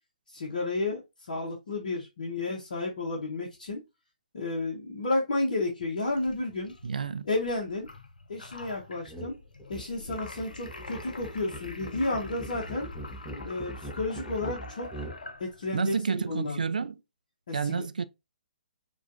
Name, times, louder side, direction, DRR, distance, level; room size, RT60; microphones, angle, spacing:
voice 1, 0.3-1.0 1.3-3.8 4.3-6.7 7.3-7.9 8.3-9.4 9.7-12.9 13.5-14.9 15.4-16.6 17.5-17.8, left 2 dB, 60° left, 1.0 m, -32 dB
sound 1, 6.1-15.8, left 3 dB, 80° left, 0.6 m, -45 dB
voice 2, 6.8-7.3 15.7-17.0 17.5-18.1, right 5 dB, 70° right, 0.4 m, -29 dB
sound 2, 9.1-9.3 9.6-15.2, right 1 dB, ahead, 0.7 m, -42 dB
4.9 x 2.4 x 2.6 m
figure-of-eight pair, 130°, 5 cm